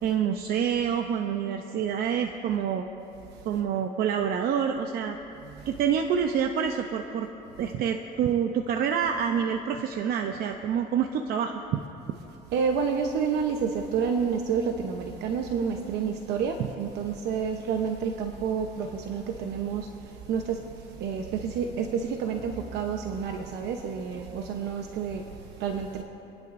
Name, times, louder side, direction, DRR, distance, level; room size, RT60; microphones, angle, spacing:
voice 1, 0.0-2.8 3.5-5.2 5.7-7.3 7.6-11.8 12.1-12.2, right 8 dB, 65° right, 5 dB, 0.7 m, -27 dB
voice 2, 5.4-5.8 7.6-7.7 12.1-26.0, right 6 dB, 80° right, 3 dB, 0.9 m, -30 dB
30.0 x 10.5 x 2.6 m, 3.0 s
cardioid pair, 110°, 17 cm